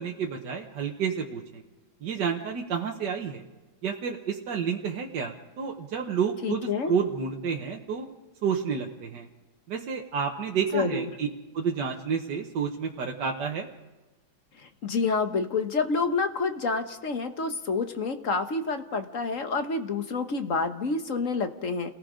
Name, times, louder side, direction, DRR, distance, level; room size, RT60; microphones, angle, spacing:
voice 1, 0.0-1.6 2.0-3.4 3.8-8.0 8.4-9.3 9.7-11.3 11.5-13.7, right 6 dB, 75° right, 1 dB, 1.7 m, -30 dB
voice 2, 6.4-6.9 10.7-11.1 14.6-21.9, left 4 dB, 50° left, 7 dB, 1.5 m, -28 dB
29.0 x 18.5 x 5.1 m, 1.2 s
omnidirectional pair, 1.8 m